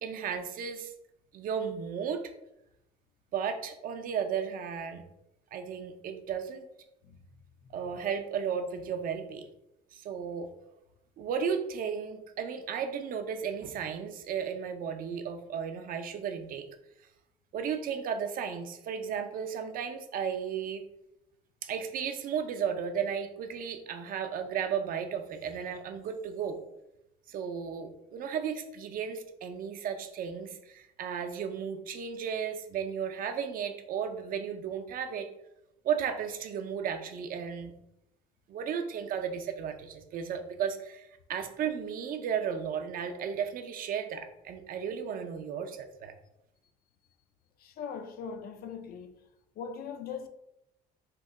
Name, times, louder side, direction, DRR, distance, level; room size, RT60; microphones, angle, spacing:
voice 1, 0.0-0.9 1.3-2.3 3.3-5.0 5.5-6.7 7.7-9.5 9.9-10.5 11.2-16.7 17.5-20.8 21.6-26.6 27.3-35.3 35.8-37.7 38.5-46.1, right 7 dB, 55° right, 0.5 m, -34 dB
voice 2, 47.6-49.2 49.6-50.3, left 6 dB, 65° left, 0.4 m, -40 dB
2.9 x 2.1 x 3.6 m
cardioid pair, 110°, 17 cm